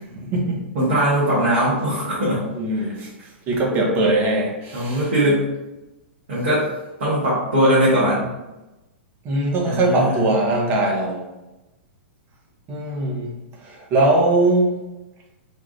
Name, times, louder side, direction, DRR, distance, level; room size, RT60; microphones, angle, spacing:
voice 1, 0.0-0.7 2.5-5.1 9.2-11.2 12.7-13.3 13.6-14.8, right 2 dB, 35° right, -1 dB, 0.8 m, -21 dB
voice 2, 0.7-2.5 4.7-5.4 6.3-6.7 7.0-8.3 9.6-10.2, equal, 65° right, -10 dB, 1.3 m, -20 dB
3.5 x 2.3 x 2.5 m, 1.0 s
figure-of-eight pair, 110°, 6 cm